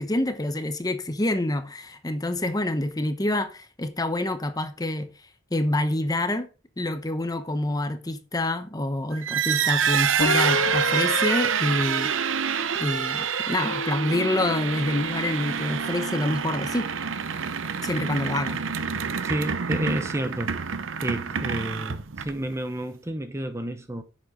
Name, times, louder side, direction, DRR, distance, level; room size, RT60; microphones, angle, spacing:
voice 1, 0.0-5.1 5.5-6.5 6.8-12.1 12.8-16.9 17.8-18.6, left 1 dB, 20° left, 0.9 m, -27 dB
sound 1, 9.1-22.6, right 7 dB, 90° right, 0.7 m, -27 dB
sound 2, 10.2-12.9 13.5-16.0, left 5 dB, 75° left, 0.5 m, -34 dB
voice 2, 19.2-20.8 21.0-24.0, right 1 dB, 15° right, 0.8 m, -31 dB
10.0 x 7.5 x 3.8 m
head